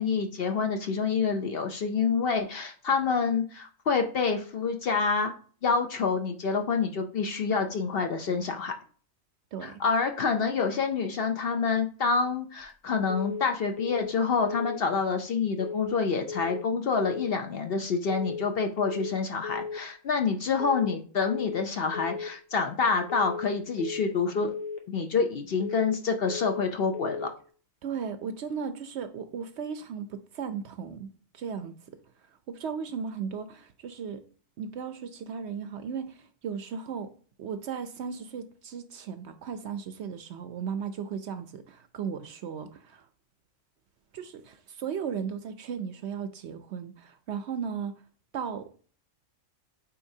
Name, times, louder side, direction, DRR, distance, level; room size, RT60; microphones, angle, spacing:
voice 1, 0.0-5.3 5.6-8.7 9.6-24.5 24.9-27.3, left 5 dB, 55° left, 0.7 m, -27 dB
sound 1, 13.1-13.5 13.8-14.2 14.4-14.8 15.6-16.0 16.3-16.7 16.9-17.3 18.1-18.5 18.8-19.2 19.4-19.8 20.6-21.0 21.3-21.7 21.9-22.3 23.1-23.5 23.8-24.2 24.4-24.8 25.6-26.0 26.3-26.7 26.9-27.3, left 5 dB, 85° left, 1.3 m, -36 dB
voice 2, 27.8-31.7 32.5-34.2 34.6-37.1 37.4-43.1 44.1-47.9 48.3-48.7, right 6 dB, 65° right, 0.8 m, -36 dB
8.5 x 4.4 x 2.7 m
omnidirectional pair, 1.4 m